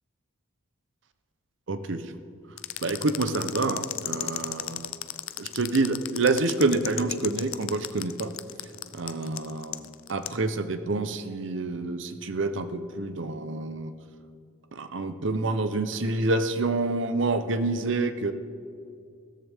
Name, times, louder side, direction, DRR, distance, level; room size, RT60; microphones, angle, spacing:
voice 1, 1.7-2.1 2.8-4.9 5.4-8.3 8.9-13.9 14.7-18.3, right 3 dB, 60° right, 10 dB, 0.7 m, -27 dB
sound 1, 2.6-10.4, left 14 dB, 75° left, 0.5 m, -34 dB
16.0 x 13.5 x 3.5 m, 2.4 s
head